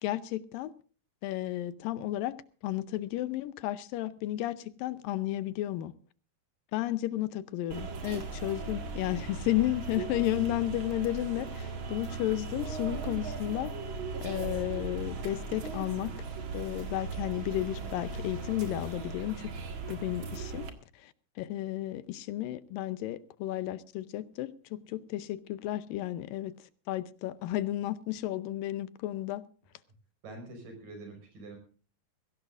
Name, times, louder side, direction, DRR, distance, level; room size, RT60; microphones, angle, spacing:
voice 1, 0.0-0.7 1.2-2.4 2.6-5.9 6.7-13.7 14.2-16.1 16.5-19.5 19.9-20.7 21.0-21.1 21.4-26.5 26.9-29.5, left 14 dB, 85° left, 2.5 m, -33 dB
sound 1, 7.7-20.7, right 4 dB, 45° right, 2.1 m, -38 dB
voice 2, 30.2-31.6, right 2 dB, 75° right, 6.9 m, -45 dB
21.5 x 16.5 x 2.5 m
omnidirectional pair, 4.0 m